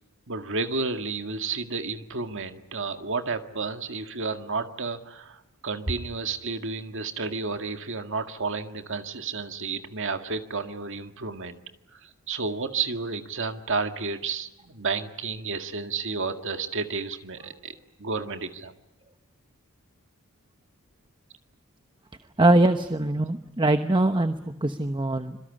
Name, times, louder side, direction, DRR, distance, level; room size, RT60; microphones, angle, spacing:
voice 1, 0.3-11.6 11.9-18.7, right 4 dB, 60° right, 7 dB, 1.9 m, -31 dB
voice 2, 22.4-25.4, right 2 dB, 20° right, 8 dB, 1.0 m, -22 dB
26.0 x 23.0 x 9.9 m, 0.91 s
head